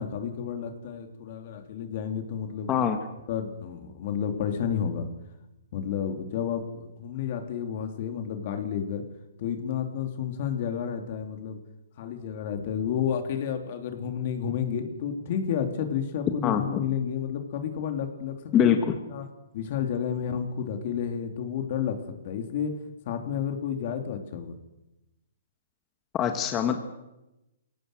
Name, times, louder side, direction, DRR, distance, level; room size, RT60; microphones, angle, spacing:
voice 1, 0.0-2.7 3.3-5.1 5.7-9.0 9.4-11.6 12.0-18.4 18.6-19.3 19.5-22.8 23.1-24.5, left 8 dB, 45° left, 6 dB, 3.0 m, -31 dB
voice 2, 16.4-16.8 18.5-19.0 26.1-26.8, left 8 dB, 20° left, 6 dB, 1.7 m, -23 dB
22.5 x 17.5 x 7.9 m, 0.97 s
hypercardioid pair, 150°, 0 cm